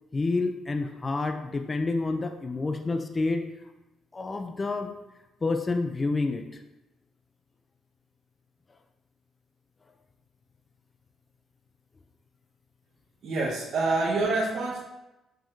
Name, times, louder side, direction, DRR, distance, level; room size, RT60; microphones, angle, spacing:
voice 1, 0.1-3.4 4.1-5.0 5.4-6.6, left 3 dB, 30° left, 7 dB, 0.6 m, -28 dB
voice 2, 13.2-14.8, right 3 dB, 70° right, -7 dB, 1.5 m, -26 dB
7.1 x 6.1 x 2.8 m, 0.97 s
cardioid pair, 90°, 0 cm